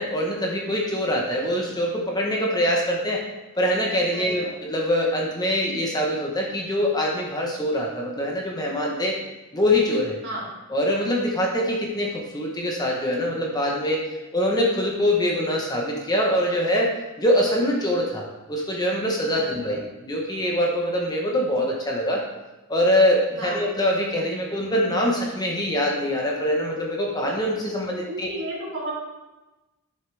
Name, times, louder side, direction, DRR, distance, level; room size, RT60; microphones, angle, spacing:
voice 1, 0.0-3.2 3.6-9.2 9.5-10.2 10.7-14.0 14.3-16.9 17.2-22.2 22.7-28.3, equal, 20° left, -1 dB, 1.1 m, -24 dB
voice 2, 4.1-4.5 10.2-10.4 19.4-19.8 23.3-23.6 27.9-28.9, right 1 dB, 55° right, -5 dB, 3.6 m, -33 dB
10.5 x 7.2 x 3.5 m, 1.1 s
head